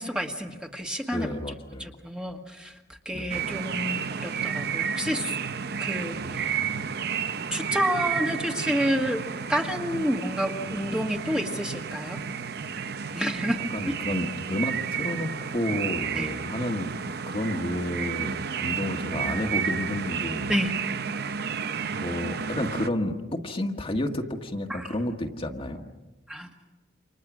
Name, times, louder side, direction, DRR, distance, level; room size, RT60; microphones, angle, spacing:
voice 1, 0.0-1.3 1.8-2.7 3.0-5.4 5.8-6.2 7.5-9.2 9.5-12.2 13.1-13.9 16.1-16.3 20.5-20.7 24.7-24.9 26.3-26.5, equal, 5° right, 2 dB, 1.7 m, -29 dB
voice 2, 1.1-1.9 3.1-3.3 6.2-6.8 13.7-17.0 17.3-18.3 18.6-20.5 21.8-25.8, left 1 dB, 30° left, 3 dB, 1.6 m, -31 dB
sound 1, 3.3-22.9, right 6 dB, 60° right, 0.7 m, -31 dB
29.5 x 26.0 x 6.2 m, 1.1 s
head